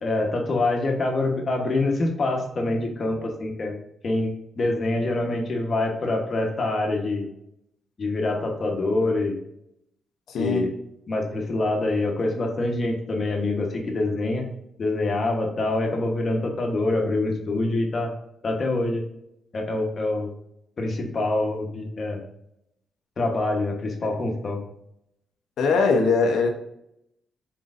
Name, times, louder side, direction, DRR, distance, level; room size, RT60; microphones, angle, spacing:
voice 1, 0.0-3.8 4.0-7.3 8.0-9.4 10.4-10.7 11.1-14.4 14.8-18.1 18.4-19.0 19.5-20.3 20.8-22.2 23.2-24.6, left 2 dB, 45° left, 2 dB, 1.1 m, -25 dB
voice 2, 10.3-10.7 25.6-26.5, left 4 dB, 80° left, 2 dB, 0.7 m, -21 dB
4.4 x 3.9 x 2.5 m, 0.78 s
cardioid pair, 100°, 0 cm